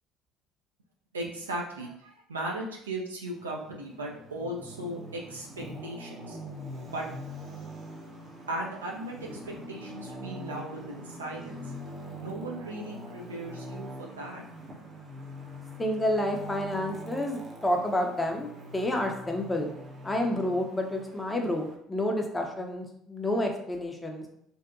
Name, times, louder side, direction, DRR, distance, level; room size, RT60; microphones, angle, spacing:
voice 1, 1.1-6.4 6.9-7.1 8.5-11.7 12.2-14.4 14.7-14.8, right 1 dB, 85° right, -2 dB, 0.4 m, -37 dB
Traffic noise roadway noise, 3.3-21.8, equal, 40° right, 0.6 m, -43 dB
voice 2, 15.8-19.7 20.0-24.2, left 1 dB, 15° left, 2 dB, 0.5 m, -29 dB
2.7 x 2.1 x 2.4 m, 0.70 s
figure-of-eight pair, 60°, 0 cm